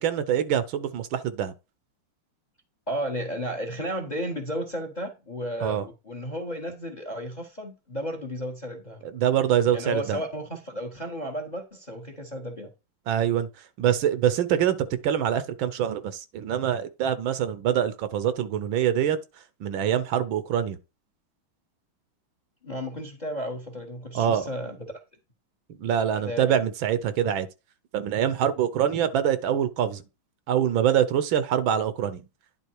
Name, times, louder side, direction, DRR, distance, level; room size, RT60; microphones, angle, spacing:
voice 1, 0.0-1.5 5.6-5.9 9.1-10.2 13.1-13.5 13.8-14.8 15.0-19.2 19.6-20.8 24.1-24.4 25.8-27.5 27.9-30.0 30.5-32.2, right 9 dB, 75° right, 1.4 m, -24 dB
voice 2, 2.9-9.0 9.7-12.7 22.6-25.0 26.3-26.6, equal, 30° left, 0.9 m, -33 dB
10.0 x 3.7 x 4.6 m
omnidirectional pair, 2.3 m